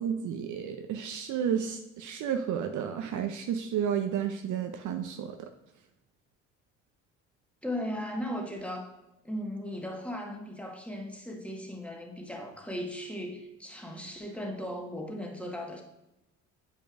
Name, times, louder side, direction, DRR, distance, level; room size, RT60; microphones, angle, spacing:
voice 1, 0.0-5.4, right 8 dB, 50° right, 6 dB, 0.6 m, -32 dB
voice 2, 7.6-8.9 9.2-15.8, equal, 5° left, 1 dB, 1.4 m, -37 dB
8.3 x 5.3 x 2.5 m, 0.94 s
hypercardioid pair, 55°, 40 cm